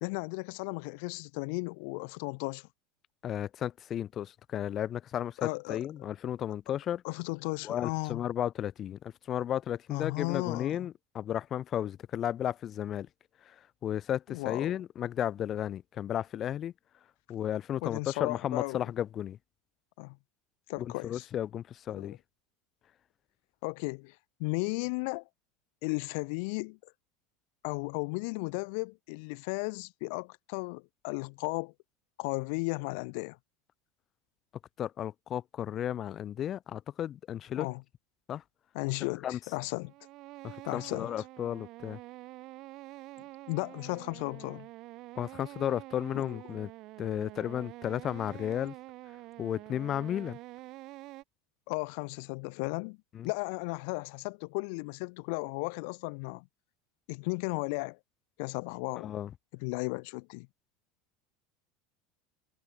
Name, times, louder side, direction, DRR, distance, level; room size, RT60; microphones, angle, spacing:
voice 1, 0.0-2.7 5.4-5.8 7.0-8.2 9.9-10.9 14.3-14.8 17.8-18.8 20.0-20.2 20.7-21.3 21.9-22.2 23.6-25.2 25.8-26.8 27.6-31.7 32.2-33.4 37.6-37.8 38.7-39.9 40.7-41.1 43.5-44.7 46.1-46.4 51.7-53.0 53.2-56.5 57.1-58.0 58.4-59.1 59.6-60.5, left 33 dB, 70° left, 2.5 m, -35 dB
voice 2, 3.2-7.0 7.6-13.1 13.4-13.5 13.8-16.7 17.3-19.4 20.8-22.2 34.8-37.7 38.3-38.4 39.2-39.4 40.4-42.0 45.2-46.7 47.0-48.7 49.4-50.4 53.1-53.3 59.0-59.3, left 10 dB, 40° left, 2.9 m, -34 dB
sound 1, 39.7-51.2, right 19 dB, 55° right, 3.1 m, -47 dB
hypercardioid pair, 95°, 0 cm